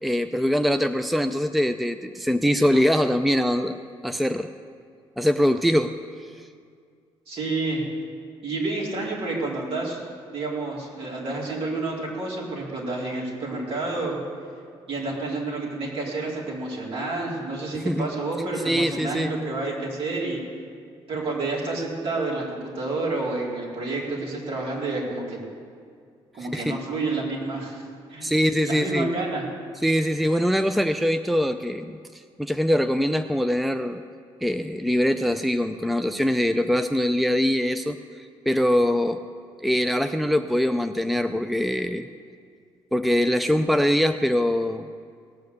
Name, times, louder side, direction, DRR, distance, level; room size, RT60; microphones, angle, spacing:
voice 1, 0.0-3.8 4.0-4.5 5.2-5.9 6.4-6.5 17.7-18.1 18.6-19.3 26.4-26.8 28.2-29.1 29.8-32.0 32.4-34.0 34.4-39.2 39.6-42.1 42.9-44.8, equal, ahead, 9 dB, 0.5 m, -23 dB
voice 2, 7.3-7.8 8.4-10.0 10.3-14.2 14.9-20.4 21.1-25.4 26.3-27.8 28.1-28.3 28.6-29.4, right 2 dB, 60° right, -4 dB, 4.4 m, -29 dB
18.5 x 6.6 x 8.3 m, 2.2 s
supercardioid pair, 70°, 11 cm